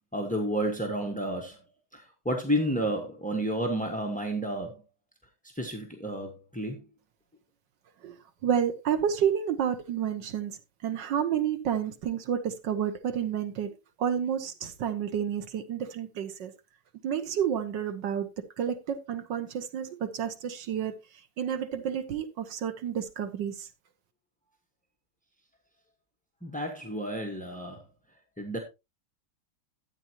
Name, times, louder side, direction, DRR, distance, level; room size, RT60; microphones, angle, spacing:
voice 1, 0.1-1.6 1.9-4.8 5.5-6.8 26.4-27.8 28.4-28.6, right 1 dB, 5° left, 0.8 m, -31 dB
voice 2, 8.4-10.6 10.8-13.7 14.0-16.5 17.0-18.3 18.6-20.9 21.4-23.7, right 8 dB, 60° right, 1.5 m, -30 dB
13.0 x 8.5 x 2.9 m
omnidirectional pair, 2.4 m